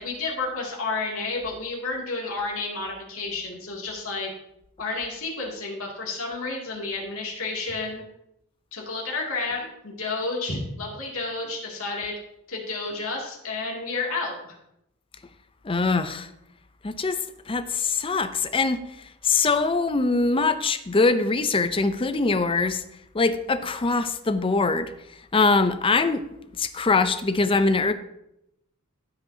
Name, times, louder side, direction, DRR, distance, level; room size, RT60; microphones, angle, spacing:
voice 1, 0.0-4.3 4.8-8.0 8.7-12.2 12.5-14.6, left 3 dB, 75° left, -2 dB, 2.5 m, -31 dB
voice 2, 15.6-16.3 16.8-17.2 17.5-18.8 19.2-22.8 23.1-24.9 25.3-26.2 26.5-27.9, left 3 dB, 25° left, 11 dB, 0.5 m, -23 dB
15.5 x 5.7 x 2.8 m, 0.82 s
head